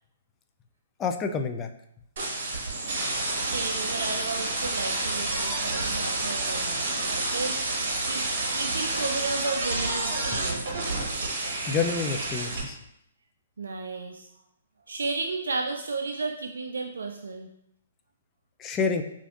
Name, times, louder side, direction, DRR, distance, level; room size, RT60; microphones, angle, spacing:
voice 1, 1.0-1.7 11.7-12.8 18.6-19.0, left 5 dB, 20° left, 6 dB, 0.3 m, -28 dB
sound 1, 2.2-12.6, right 2 dB, 55° right, 1.1 m, -29 dB
voice 2, 3.4-7.6 8.0-8.3 8.5-11.0 13.6-14.3 14.9-17.5, right 3 dB, 75° right, 4 dB, 0.3 m, -33 dB
4.9 x 2.5 x 2.4 m, 0.77 s
hypercardioid pair, 130°, 0 cm